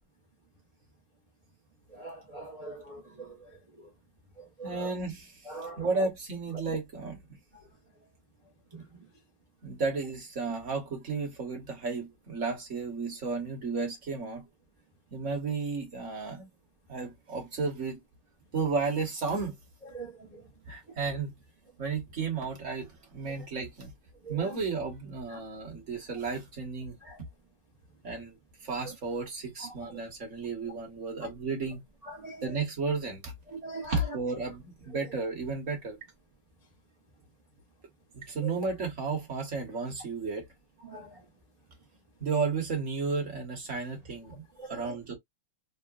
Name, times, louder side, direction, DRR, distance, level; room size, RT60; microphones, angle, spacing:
voice 1, 1.9-3.5 4.6-4.9 5.5-5.8 8.7-8.8 19.8-20.4 24.2-24.6 27.0-27.2 29.9-30.0 32.1-32.4 33.5-34.0 38.4-38.6 40.9-41.1 44.6-44.9, right 3 dB, 60° right, 0.4 m, -42 dB
voice 2, 4.6-5.3 5.8-7.2 9.6-14.5 15.1-16.5 16.9-18.0 18.5-19.5 20.7-21.3 21.8-23.9 24.3-27.0 28.0-28.4 28.6-31.8 32.4-33.3 33.9-36.0 38.1-40.5 42.2-44.4 44.7-45.2, right 4 dB, 45° right, 1.1 m, -33 dB
3.7 x 2.2 x 2.3 m
omnidirectional pair, 2.3 m